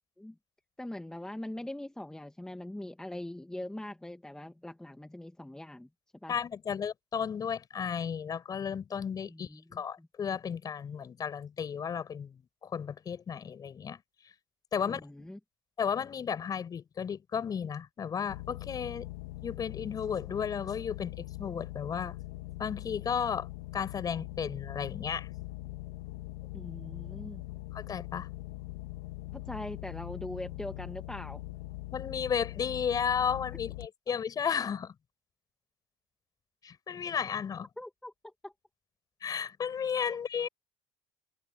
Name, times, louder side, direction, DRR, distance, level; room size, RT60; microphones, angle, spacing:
voice 1, 0.8-5.9 6.2-6.3 9.3-10.1 14.8-15.4 26.5-27.4 29.3-31.4 37.8-38.5, left 1 dB, 5° left, 2.0 m, -42 dB
voice 2, 6.3-14.0 14.7-15.3 15.8-19.1 19.4-22.2 22.6-23.5 23.7-25.3 27.7-28.3 31.9-34.9 36.6-37.7 39.2-40.5, left 7 dB, 40° left, 7.2 m, -34 dB
sound 1, 18.3-33.9, left 18 dB, 85° left, 2.6 m, -42 dB
supercardioid pair, 80°, 10 cm